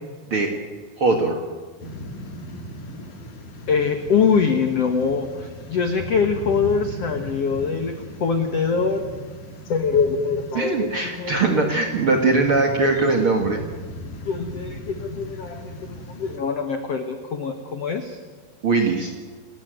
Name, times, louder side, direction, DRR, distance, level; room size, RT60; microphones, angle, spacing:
voice 1, 1.0-1.4 10.5-13.6 18.6-19.1, right 3 dB, 50° right, 3 dB, 1.6 m, -20 dB
sound 1, 1.8-16.4, equal, 50° left, 3.5 m, -38 dB
voice 2, 3.7-9.0 9.7-11.6 14.2-15.8 16.2-18.2, left 5 dB, 85° left, 7 dB, 1.3 m, -23 dB
29.5 x 13.5 x 9.2 m, 1.5 s
omnidirectional pair, 5.0 m